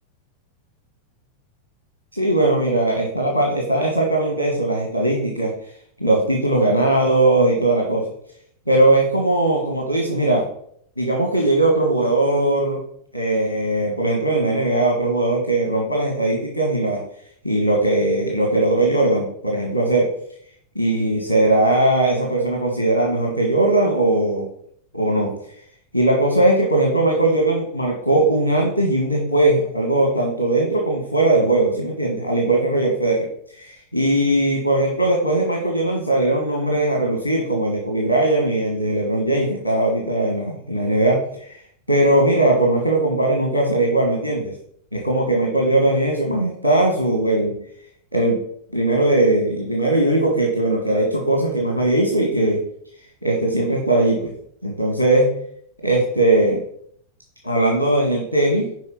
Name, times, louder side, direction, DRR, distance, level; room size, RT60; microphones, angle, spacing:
voice 1, 2.1-5.5 6.0-8.0 8.7-10.4 11.0-12.8 13.1-17.0 17.4-20.1 20.7-24.5 24.9-25.3 25.9-33.3 33.5-41.6 41.9-44.5 44.9-47.5 48.1-48.4 48.7-52.6 53.2-54.3 54.6-55.3 55.8-56.6 57.4-58.6, right 2 dB, 85° right, 1 dB, 1.3 m, -19 dB
6.4 x 4.8 x 5.5 m, 0.66 s
figure-of-eight pair, 90°, 0 cm